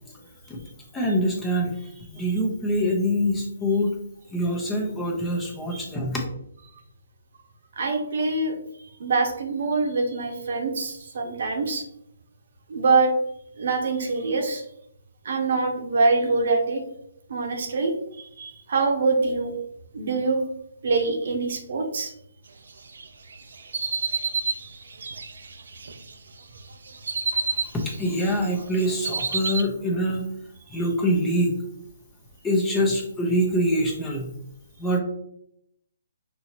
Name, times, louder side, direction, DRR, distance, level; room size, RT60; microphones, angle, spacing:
voice 1, 0.9-1.7 2.1-4.0 4.3-6.2 27.7-30.3 30.7-31.5 32.4-34.3 34.8-35.0, equal, 10° left, 0 dB, 0.7 m, -24 dB
voice 2, 7.8-8.6 9.0-11.8 12.7-13.1 13.6-14.6 15.2-16.8 17.3-19.5 19.9-20.4 20.8-22.1 24.4-24.8, right 3 dB, 60° right, 4 dB, 0.8 m, -24 dB
sound 1, 22.9-26.1 26.6-28.3 28.6-29.6, right 5 dB, 75° right, 0.5 m, -29 dB
5.5 x 2.8 x 2.9 m, 0.74 s
hypercardioid pair, 160°, 0 cm